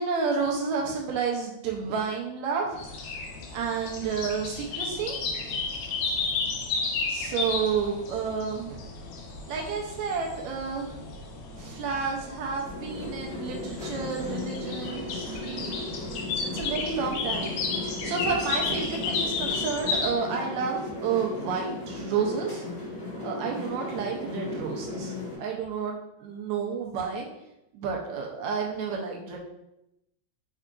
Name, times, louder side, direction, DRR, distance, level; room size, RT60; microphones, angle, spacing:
voice 1, 0.0-3.2 3.5-5.7 7.1-8.9 9.5-11.0 11.6-15.7 16.4-17.6 17.8-22.6 23.2-27.3 27.7-29.4, right 5 dB, 75° right, 0 dB, 1.9 m, -31 dB
sound 1, 2.8-20.1, left 4 dB, 75° left, 1.4 m, -33 dB
sound 2, 12.6-25.4, left 2 dB, 35° left, 1.4 m, -36 dB
4.8 x 4.5 x 2.4 m, 0.86 s
omnidirectional pair, 3.4 m